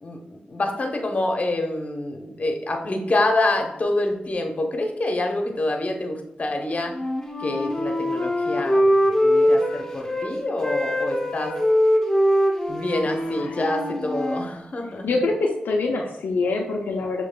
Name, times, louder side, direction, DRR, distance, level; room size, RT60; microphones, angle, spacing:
voice 1, 0.0-7.0 7.4-11.5 12.7-15.1, left 2 dB, 45° left, 3 dB, 0.8 m, -26 dB
Wind instrument woodwind instrument, 6.9-10.3 10.6-14.5, equal, 15° left, 0.8 m, -22 dB
voice 2, 13.0-13.6 15.0-17.2, left 3 dB, 90° left, 0 dB, 0.4 m, -25 dB
6.5 x 2.9 x 2.2 m, 0.79 s
cardioid pair, 55°, 3 cm